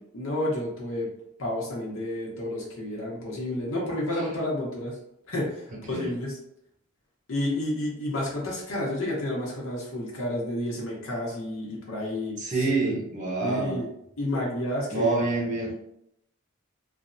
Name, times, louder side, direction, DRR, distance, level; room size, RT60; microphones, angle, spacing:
voice 1, 0.1-1.1 1.4-5.0 5.3-6.4 7.3-12.7 13.4-13.9 14.2-15.2, left 1 dB, 80° left, -4 dB, 0.8 m, -30 dB
voice 2, 12.4-13.8 14.9-15.7, right 3 dB, 40° right, -1 dB, 0.7 m, -27 dB
3.3 x 2.0 x 2.6 m, 0.77 s
head